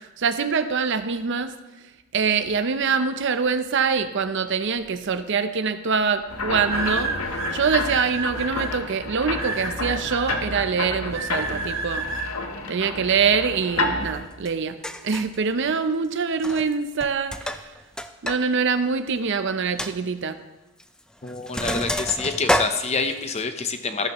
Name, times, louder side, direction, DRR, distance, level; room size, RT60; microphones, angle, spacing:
voice 1, 0.2-1.5 2.1-7.1 7.5-12.0 12.7-14.7 15.0-17.7 18.2-20.4, right 5 dB, 55° right, 11 dB, 0.6 m, -24 dB
sound 1, 5.2-5.4 6.6-8.7 9.4-10.4 11.1-12.2, right 4 dB, 75° right, 2.5 m, -29 dB
sound 2, 6.3-14.3, left 2 dB, 80° left, 1.2 m, -30 dB
Sink (filling or washing), 14.4-14.5 14.8-15.4 16.3-16.7 17.0-18.4 18.7-18.8 19.2-19.3 19.8-19.9 20.8-21.0 21.3-23.4, left 1 dB, 5° left, 0.3 m, -28 dB
voice 2, 21.2-24.1, left 4 dB, 30° left, 8 dB, 0.7 m, -27 dB
13.5 x 11.5 x 3.0 m, 1.1 s
head